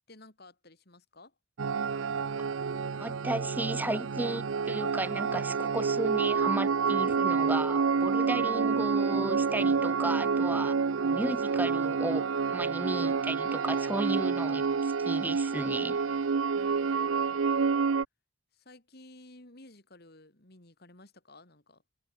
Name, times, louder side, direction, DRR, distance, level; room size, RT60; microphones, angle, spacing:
voice 1, 0.0-1.3 16.5-17.8 18.5-21.8, left 2 dB, 50° left, 3.3 m, -54 dB
sound 1, 1.6-18.1, right 5 dB, 85° right, 0.6 m, -28 dB
voice 2, 3.0-12.2 12.5-16.2, right 1 dB, 10° right, 0.4 m, -34 dB
head